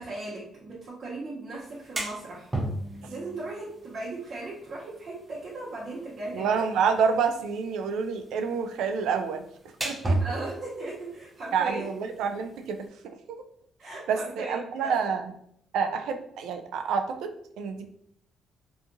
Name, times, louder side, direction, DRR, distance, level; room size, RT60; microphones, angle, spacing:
voice 1, 0.0-2.5 3.1-6.6 10.1-11.9 13.8-15.0, right 2 dB, 55° right, -6 dB, 0.8 m, -37 dB
sound 1, 1.6-12.9, right 2 dB, 20° right, 0.6 m, -37 dB
voice 2, 6.3-9.4 9.8-10.2 11.5-12.8 14.1-15.2 15.7-17.9, right 6 dB, 85° right, 6 dB, 0.3 m, -28 dB
2.7 x 2.4 x 2.6 m, 0.70 s
cardioid pair, 90°, 0 cm